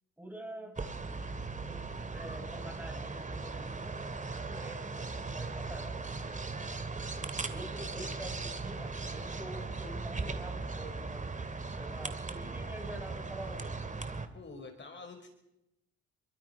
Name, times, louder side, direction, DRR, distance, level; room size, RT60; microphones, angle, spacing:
voice 1, 0.2-0.8 1.6-1.8 2.1-6.0 7.5-11.3 11.6-13.8, right 1 dB, 5° right, 3 dB, 7.8 m, -47 dB
sound 1, 0.8-14.3, right 3 dB, 25° right, 2.6 m, -38 dB
Marimba xylophone, 0.8-6.4, right 4 dB, 50° right, 5.3 m, -60 dB
voice 2, 7.6-8.4 14.3-15.3, left 3 dB, 40° left, 5 dB, 5.0 m, -49 dB
27.5 x 23.5 x 5.7 m, 0.85 s
cardioid pair, 90°, 30 cm